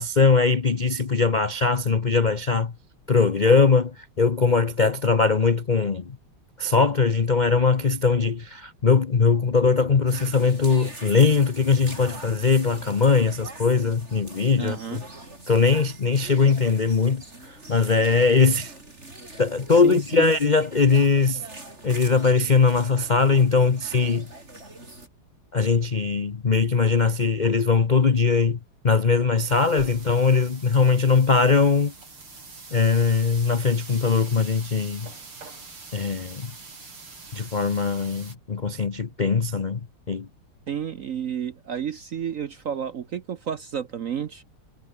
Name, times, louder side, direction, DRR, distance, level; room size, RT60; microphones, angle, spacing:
voice 1, 0.0-2.7 3.1-6.2 6.6-15.0 15.5-18.7 19.4-21.4 21.8-24.3 25.5-28.6 28.8-31.9 32.7-35.1 35.9-36.5 37.3-39.8 40.1-40.3, left 4 dB, 70° left, 0.4 m, -21 dB
sound 1, 10.1-25.1, right 2 dB, 30° right, 5.4 m, -43 dB
voice 2, 14.6-15.0 19.7-20.3 40.7-44.4, right 8 dB, 60° right, 0.8 m, -31 dB
sound 2, 29.4-38.3, right 4 dB, 85° right, 5.6 m, -43 dB
omnidirectional pair, 2.3 m